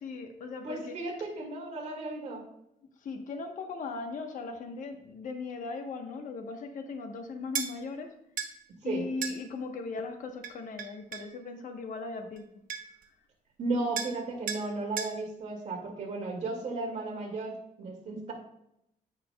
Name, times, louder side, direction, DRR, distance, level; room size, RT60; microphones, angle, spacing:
voice 1, 0.0-1.0 3.0-8.1 8.8-12.5, left 4 dB, 65° left, 5 dB, 1.0 m, -38 dB
voice 2, 0.6-2.4 8.8-9.0 13.6-18.3, right 3 dB, 55° right, 0 dB, 2.1 m, -34 dB
sound 1, 7.5-7.7 8.4-8.5 9.2-9.4 10.4-11.3 12.4-12.5 12.7-13.0 14.0-14.2 14.5-14.7 15.0-15.2, right 7 dB, 75° right, 0.9 m, -35 dB
15.0 x 5.0 x 2.2 m, 0.79 s
wide cardioid pair, 175°, 14 cm